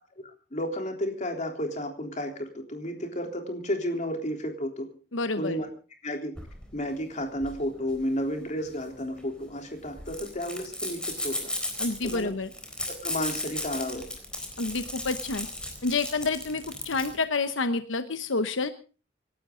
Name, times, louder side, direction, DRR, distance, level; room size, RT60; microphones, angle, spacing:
voice 1, 0.5-4.9 5.4-5.7 6.0-6.3 6.7-11.5 12.0-12.3 12.9-14.0, equal, 40° left, 3 dB, 3.6 m, -32 dB
voice 2, 5.1-5.6 11.8-12.5 14.6-15.5 15.8-18.7, left 3 dB, 85° left, 10 dB, 1.0 m, -28 dB
sound 1, 6.4-17.2, left 1 dB, 5° left, 4.1 m, -36 dB
26.5 x 12.5 x 3.8 m, 0.36 s
head